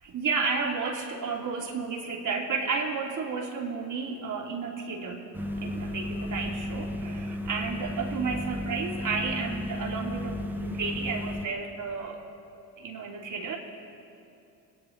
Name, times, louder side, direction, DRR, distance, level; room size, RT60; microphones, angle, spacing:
voice 1, 0.0-5.3 5.6-12.2 12.8-13.6, right 5 dB, 45° right, -1 dB, 3.0 m, -32 dB
sound 1, 5.3-11.5, left 1 dB, 5° right, 1.5 m, -34 dB
25.5 x 9.6 x 4.0 m, 2.8 s
hypercardioid pair, 60°, 42 cm